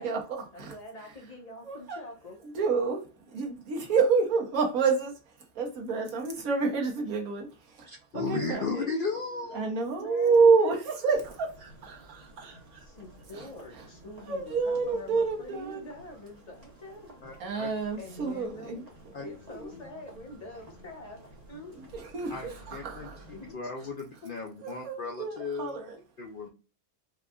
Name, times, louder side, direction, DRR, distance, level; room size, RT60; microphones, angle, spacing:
voice 1, 0.0-0.7 1.6-2.0 2.4-12.9 13.3-13.9 14.2-15.8 17.4-18.8 19.2-19.8 21.7-23.3 24.6-26.0, right 4 dB, 70° right, 1.4 m, -29 dB
voice 2, 0.5-2.4 9.9-10.7 12.8-17.3 18.0-18.8 19.2-21.7 23.3-23.6 24.2-24.3, left 2 dB, 30° left, 1.0 m, -45 dB
voice 3, 7.9-9.8 17.2-17.7 19.1-19.3 22.3-23.1 23.5-25.7 26.2-26.5, left 4 dB, 65° left, 0.5 m, -35 dB
sound 1, 11.1-23.5, right 1 dB, 30° right, 1.1 m, -53 dB
4.6 x 2.4 x 2.3 m
omnidirectional pair, 1.6 m